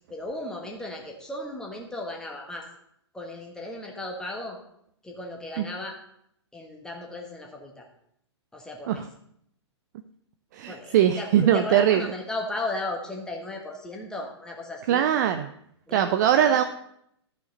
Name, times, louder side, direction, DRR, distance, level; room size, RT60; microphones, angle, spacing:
voice 1, 0.1-2.7 3.1-4.6 5.0-6.0 6.5-7.9 8.5-9.1 10.7-15.1 15.9-16.6, left 2 dB, 5° left, 0 dB, 1.4 m, -36 dB
voice 2, 10.5-12.1 14.9-15.5 15.9-16.6, right 10 dB, 40° right, 9 dB, 0.5 m, -21 dB
13.5 x 5.2 x 4.1 m, 0.72 s
figure-of-eight pair, 115°, 15 cm